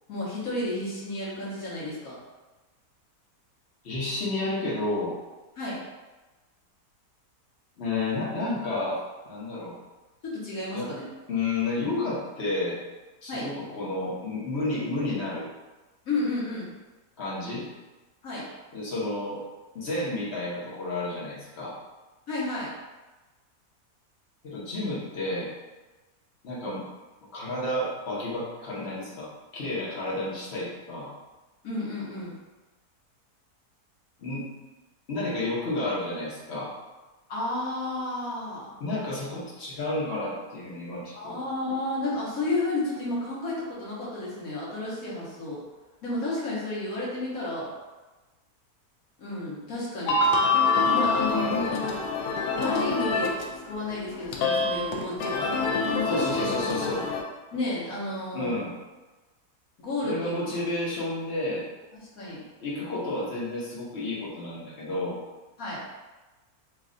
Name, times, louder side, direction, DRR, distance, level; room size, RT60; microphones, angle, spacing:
voice 1, 0.1-2.1 5.6-5.8 10.2-11.0 13.3-13.5 16.0-16.7 18.2-18.5 22.3-22.7 31.6-32.3 37.3-38.7 41.2-45.6 46.0-47.7 49.2-50.2 50.9-51.6 52.5-53.4 53.6-55.5 55.9-56.7 57.5-58.6 59.8-60.6 61.9-62.4 65.6-65.8, left 2 dB, 65° left, -7 dB, 1.4 m, -32 dB
voice 2, 3.8-5.2 7.8-9.7 10.7-10.9 11.3-12.8 13.2-15.5 17.2-17.7 18.7-19.4 19.7-21.8 24.4-25.5 26.4-26.8 27.3-31.1 34.2-34.4 35.1-36.7 38.8-41.4 51.3-51.7 56.1-57.1 58.3-58.7 60.0-61.7 62.6-65.2, left 2 dB, 50° left, -6 dB, 1.1 m, -31 dB
sound 1, 50.1-53.6 53.9-57.2, left 3 dB, 85° left, 1.1 m, -26 dB
3.2 x 2.3 x 3.7 m, 1.2 s
omnidirectional pair, 1.7 m